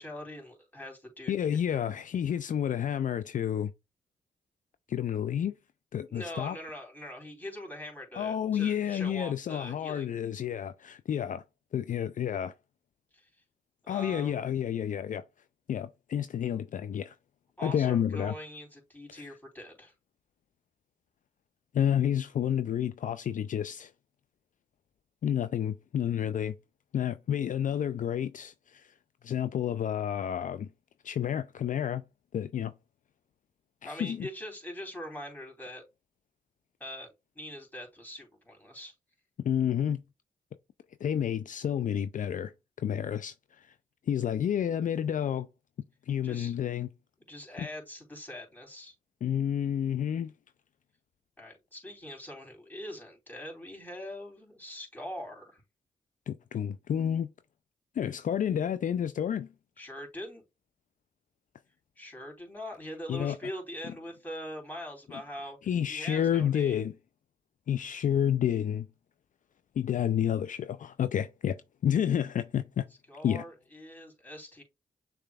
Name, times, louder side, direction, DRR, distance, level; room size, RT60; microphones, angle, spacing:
voice 1, 0.0-1.8 6.1-10.1 13.1-13.3 13.8-14.4 17.6-19.9 33.8-35.8 36.8-37.1 37.3-38.9 46.2-46.5 47.3-48.9 51.4-55.6 59.8-60.4 61.9-65.6 65.9-66.8 73.1-74.6, left 1 dB, 10° left, 3.1 m, -42 dB
voice 2, 1.3-3.7 4.9-5.5 5.9-6.6 8.2-11.4 11.7-12.5 13.9-15.2 15.7-17.1 17.6-18.3 19.1-19.2 21.7-23.9 25.2-26.6 26.9-28.9 29.2-30.7 31.0-32.0 32.3-32.7 33.8-34.3 39.4-40.0 41.0-42.5 42.8-43.7 44.1-45.5 46.1-46.9 47.6-47.7 49.2-50.3 56.3-57.3 58.0-59.5 63.1-63.3 65.7-66.9 67.7-68.9 69.8-71.6 71.8-72.9 73.2-73.4, left 9 dB, 60° left, 0.4 m, -30 dB
6.5 x 3.4 x 2.3 m
cardioid pair, 50°, 15 cm